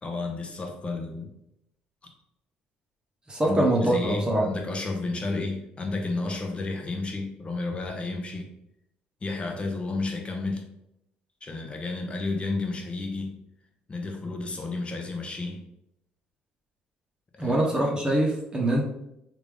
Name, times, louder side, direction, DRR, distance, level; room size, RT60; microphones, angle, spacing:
voice 1, 0.0-1.3 3.4-8.5 9.2-10.7 11.4-13.4 13.9-15.6 17.3-17.6, left 3 dB, 30° left, 3 dB, 0.8 m, -31 dB
voice 2, 3.3-4.5 17.4-18.8, right 1 dB, 25° right, -1 dB, 0.9 m, -24 dB
3.5 x 2.6 x 3.3 m, 0.81 s
supercardioid pair, 70°, 4 cm